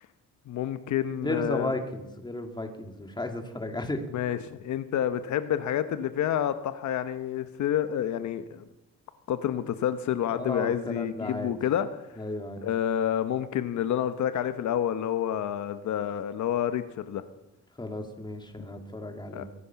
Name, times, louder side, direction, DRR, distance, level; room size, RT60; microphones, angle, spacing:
voice 1, 0.5-1.7 4.1-8.6 9.3-11.9 12.6-17.2 19.3-19.4, left 10 dB, 70° left, 10 dB, 0.9 m, -29 dB
voice 2, 1.2-4.0 10.3-11.5 12.2-12.6 17.8-19.5, left 2 dB, 15° left, 5 dB, 2.3 m, -34 dB
23.0 x 9.6 x 5.8 m, 1.0 s
cardioid pair, 90°, 30 cm